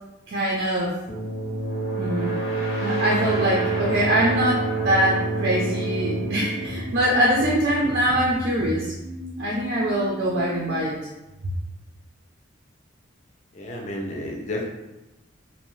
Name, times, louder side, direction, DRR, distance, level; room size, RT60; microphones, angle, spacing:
voice 1, 0.3-0.9 2.0-2.4 2.8-8.9 9.4-11.0, right 1 dB, 60° right, -5 dB, 0.4 m, -23 dB
sound 1, 1.1-7.7, right 2 dB, 90° left, 0.7 m, -28 dB
sound 2, 1.1-10.7, right 1 dB, 90° right, 0.7 m, -38 dB
sound 3, 3.2-9.8, equal, 10° right, 0.6 m, -38 dB
voice 2, 13.5-14.6, left 1 dB, 35° left, -1 dB, 0.4 m, -31 dB
2.6 x 2.1 x 3.0 m, 0.99 s
head